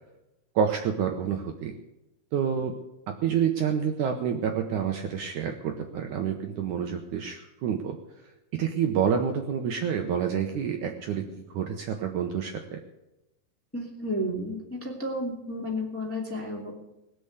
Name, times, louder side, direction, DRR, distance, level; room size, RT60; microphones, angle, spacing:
voice 1, 0.6-1.7 2.3-2.7 3.2-8.0 8.6-11.3 11.5-12.8, right 8 dB, 70° right, 4 dB, 2.1 m, -28 dB
voice 2, 13.7-16.7, equal, 5° left, -1 dB, 1.9 m, -32 dB
20.0 x 7.0 x 8.0 m, 0.93 s
omnidirectional pair, 4.3 m